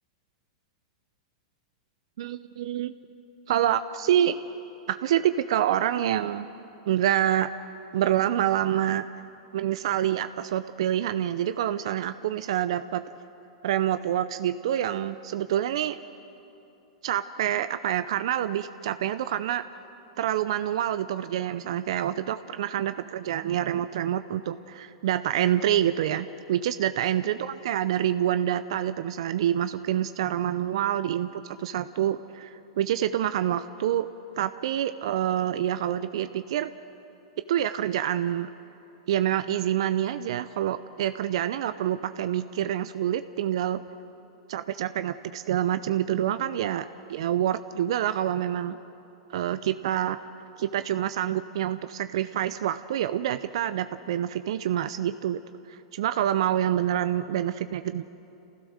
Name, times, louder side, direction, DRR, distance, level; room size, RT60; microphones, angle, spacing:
voice 1, 2.2-2.9 3.5-4.4 4.9-6.5 6.9-7.5 7.9-9.0 9.5-13.1 13.6-16.0 17.0-19.6 20.2-34.1 34.4-36.7 37.5-38.5 39.1-43.8 44.5-48.8 49.3-50.2 50.6-55.4 55.7-58.1, right 11 dB, 65° right, 11 dB, 0.6 m, -27 dB
27.5 x 16.0 x 6.5 m, 2.9 s
hypercardioid pair, 105°, 3 cm